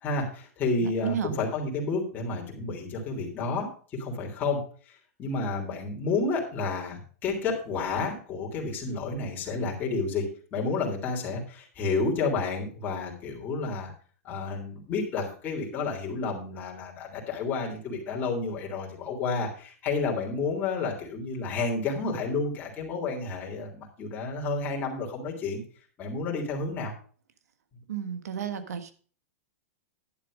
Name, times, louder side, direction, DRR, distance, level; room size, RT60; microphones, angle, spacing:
voice 1, 0.0-3.7 4.0-4.6 4.9-13.9 14.2-25.6 26.0-26.9, left 3 dB, 20° left, -2 dB, 3.3 m, -30 dB
voice 2, 0.8-1.4 26.3-26.4 27.9-28.9, right 8 dB, 90° right, 10 dB, 1.6 m, -33 dB
11.0 x 7.3 x 5.1 m, 0.42 s
supercardioid pair, 150°, 8 cm